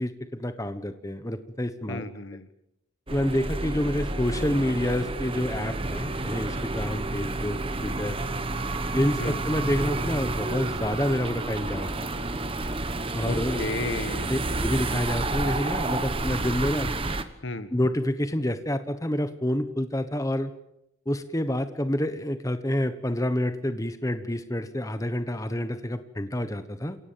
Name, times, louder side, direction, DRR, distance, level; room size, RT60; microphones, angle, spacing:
voice 1, 0.0-2.0 3.1-8.2 8.9-12.1 13.1-13.6 14.3-16.9 17.7-20.5 21.1-27.0, left 1 dB, 15° left, 10 dB, 1.2 m, -28 dB
voice 2, 1.9-2.5 9.2-9.4 13.2-14.3 17.4-17.7, left 2 dB, 60° left, 12 dB, 1.5 m, -33 dB
sound 1, 3.1-17.2, right 2 dB, 25° right, 1.2 m, -30 dB
28.5 x 17.0 x 7.5 m, 0.82 s
head